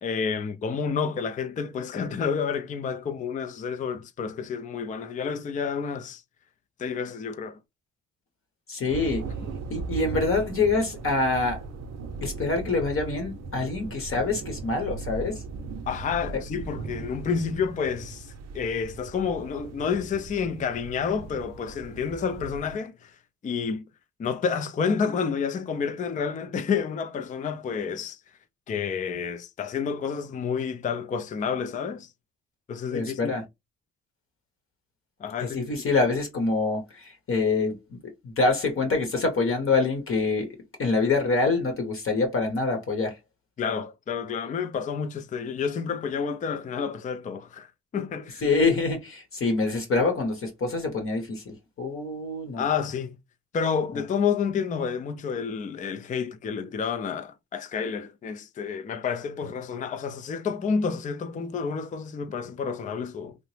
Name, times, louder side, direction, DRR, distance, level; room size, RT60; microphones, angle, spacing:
voice 1, 0.0-6.2 6.8-7.6 15.9-23.1 23.4-23.8 24.2-28.2 28.7-32.1 32.7-33.4 35.2-35.7 43.6-47.7 47.9-48.4 52.6-53.2 53.5-63.4, left 6 dB, 25° left, 0.4 m, -29 dB
voice 2, 8.7-9.2 9.7-11.6 12.2-15.4 16.3-16.4 32.9-33.4 35.4-40.5 40.8-43.2 48.4-52.6, left 3 dB, 45° left, 0.9 m, -26 dB
sound 1, 8.9-22.7, right 4 dB, 60° right, 0.6 m, -38 dB
2.8 x 2.0 x 3.1 m
cardioid pair, 90°, 30 cm